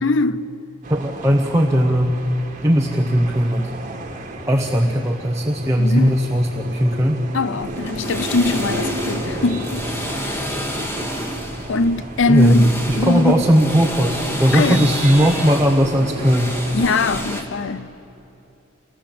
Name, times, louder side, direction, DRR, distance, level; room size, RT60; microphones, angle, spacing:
voice 1, 0.0-0.5 5.8-6.2 7.3-9.8 10.1-10.5 11.7-13.5 14.5-14.9 16.7-17.9, left 3 dB, 55° left, 0.5 m, -21 dB
sound 1, 0.8-17.2, right 1 dB, 35° right, 1.6 m, -33 dB
voice 2, 0.9-2.2 2.6-3.7 4.5-7.2 12.3-16.6, equal, 15° right, 0.9 m, -18 dB
sound 2, 7.6-17.4, equal, 10° left, 1.7 m, -29 dB
25.5 x 18.5 x 7.6 m
head